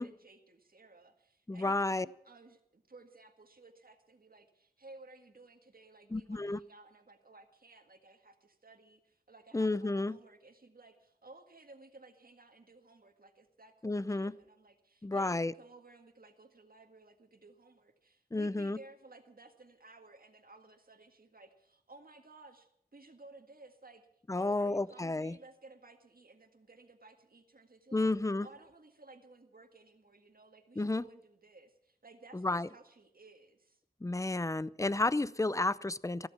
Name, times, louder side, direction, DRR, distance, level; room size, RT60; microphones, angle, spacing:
voice 1, 0.0-28.1 28.4-33.8, right 2 dB, 65° right, 6 dB, 1.8 m, -57 dB
voice 2, 1.5-2.1 6.1-6.6 9.5-10.2 13.8-14.4 15.0-15.5 18.3-18.8 24.3-25.4 27.9-28.5 30.8-31.0 32.3-32.7 34.0-36.3, left 2 dB, 20° left, 19 dB, 0.5 m, -31 dB
14.5 x 13.5 x 5.9 m, 0.73 s
wide cardioid pair, 45°, 16 cm